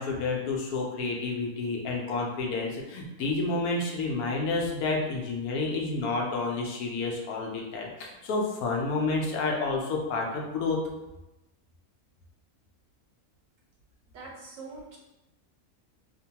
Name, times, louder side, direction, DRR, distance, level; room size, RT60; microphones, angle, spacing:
voice 1, 0.0-10.8, left 3 dB, 80° left, -1 dB, 1.1 m, -30 dB
voice 2, 14.1-15.0, right 3 dB, 65° right, -2 dB, 1.0 m, -43 dB
3.0 x 2.1 x 2.8 m, 0.97 s
omnidirectional pair, 1.6 m